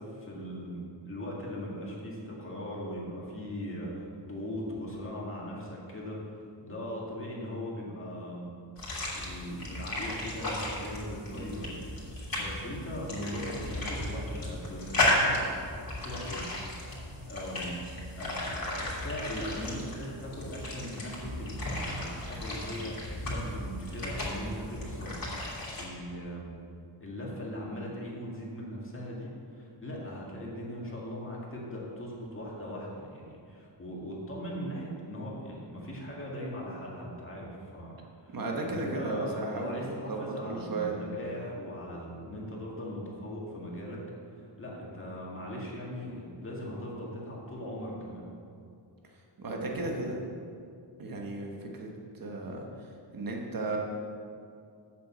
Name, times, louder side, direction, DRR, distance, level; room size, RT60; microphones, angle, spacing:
voice 1, 0.0-15.4 16.0-17.7 18.2-26.6 27.0-44.0 44.3-48.3, equal, 30° left, -4 dB, 2.0 m, -39 dB
sound 1, 8.8-25.8, left 1 dB, 50° left, 2.7 m, -34 dB
voice 2, 38.3-40.9 49.4-50.2 51.0-51.9 52.1-52.7 53.1-53.8, right 3 dB, 50° right, 0 dB, 1.4 m, -34 dB
8.1 x 6.9 x 7.4 m, 2.4 s
wide cardioid pair, 155°, 44 cm